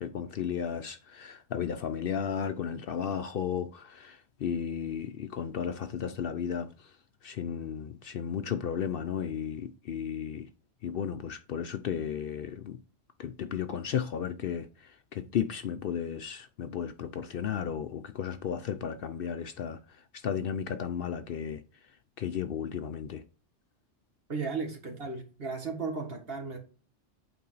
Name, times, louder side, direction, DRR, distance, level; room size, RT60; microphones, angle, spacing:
voice 1, 0.0-6.7 7.2-10.5 10.8-12.8 13.2-14.7 15.1-19.8 20.1-21.6 22.2-23.2, left 8 dB, 60° left, 0.7 m, -34 dB
voice 2, 24.3-26.6, right 4 dB, 55° right, 1.8 m, -35 dB
8.5 x 3.9 x 3.9 m
omnidirectional pair, 1.2 m